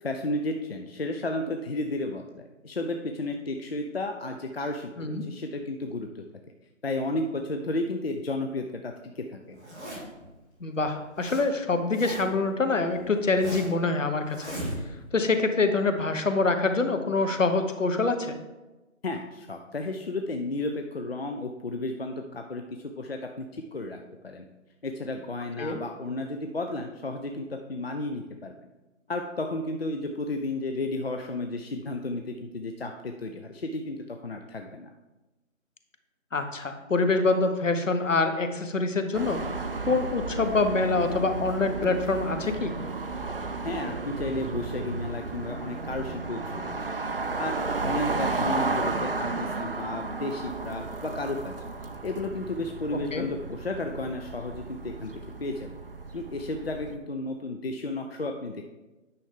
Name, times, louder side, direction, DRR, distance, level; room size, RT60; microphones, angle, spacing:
voice 1, 0.0-6.2 6.8-9.6 19.0-22.6 23.0-24.5 24.8-28.5 29.1-34.9 43.6-46.8 47.3-51.5 52.0-55.1 55.4-55.7 56.1-58.6, left 2 dB, 50° left, 4 dB, 0.6 m, -33 dB
Zipper (clothing), 9.5-10.2 10.8-11.4 11.7-12.4 12.9-13.8 14.3-15.1, right 1 dB, 15° right, 1.7 m, -37 dB
voice 2, 10.6-14.5 15.1-18.4 25.6-25.8 36.3-39.4 39.8-42.8 53.1-53.3, left 3 dB, 70° left, 7 dB, 1.2 m, -25 dB
sound 1, 39.1-56.9, right 3 dB, 45° right, 0.5 m, -33 dB
9.3 x 6.1 x 3.7 m, 1.1 s
figure-of-eight pair, 160°, 40 cm